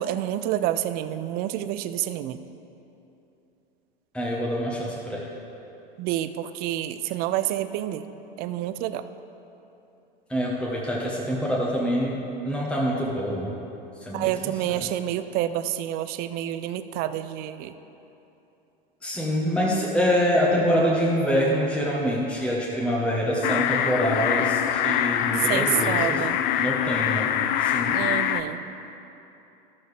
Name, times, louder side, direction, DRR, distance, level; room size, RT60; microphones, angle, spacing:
voice 1, 0.0-2.4 6.0-8.0 8.4-9.0 14.1-17.7 25.5-26.4 27.9-28.6, right 12 dB, 35° right, 12 dB, 0.4 m, -28 dB
voice 2, 4.1-5.3 10.3-12.2 12.4-13.5 14.0-14.9 19.0-26.3 26.5-28.0, equal, 5° left, -4 dB, 1.0 m, -25 dB
sound 1, 23.4-28.4, left 10 dB, 55° left, 0.5 m, -24 dB
13.0 x 6.9 x 3.3 m, 2.9 s
hypercardioid pair, 95°, 29 cm